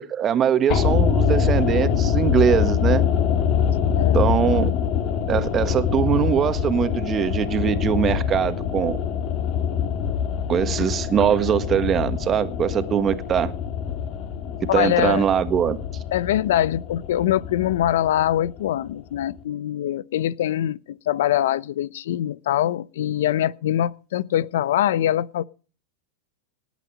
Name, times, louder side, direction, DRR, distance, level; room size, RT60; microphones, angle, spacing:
voice 1, 0.0-3.0 4.1-4.7 5.3-9.0 10.5-13.5 14.7-15.8, right 8 dB, 30° right, 1.5 m, -22 dB
sound 1, 0.7-18.9 19.2-19.3, left 7 dB, 45° left, 2.5 m, -24 dB
voice 2, 4.0-4.3 14.7-15.3 16.1-25.4, left 12 dB, 75° left, 0.7 m, -23 dB
18.5 x 8.3 x 5.2 m
hypercardioid pair, 110°, 0 cm